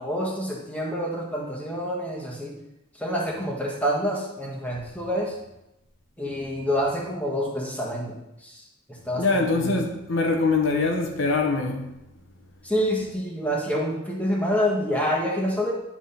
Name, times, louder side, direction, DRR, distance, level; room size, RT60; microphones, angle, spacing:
voice 1, 0.0-2.5 3.0-5.3 6.2-8.6 9.0-9.8 12.6-15.7, equal, 5° left, 1.4 m, -27 dB
voice 2, 9.2-11.9, left 3 dB, 65° left, 0.9 m, -23 dB
10.0 x 3.6 x 5.6 m
head